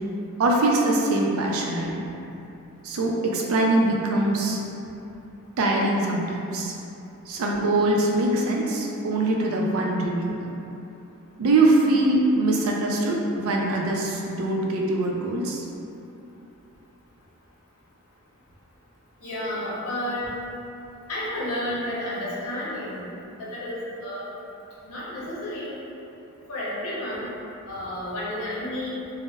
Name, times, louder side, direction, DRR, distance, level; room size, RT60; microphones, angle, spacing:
voice 1, 0.4-2.0 2.8-4.6 5.6-6.7 7.3-10.5 11.4-15.6, right 2 dB, 70° right, -1 dB, 0.4 m, -23 dB
voice 2, 19.2-20.3 21.1-23.0 23.4-24.3 24.8-25.7 26.5-27.3 27.6-28.9, left 1 dB, 80° left, -7 dB, 0.7 m, -31 dB
2.1 x 2.0 x 3.3 m, 2.8 s
head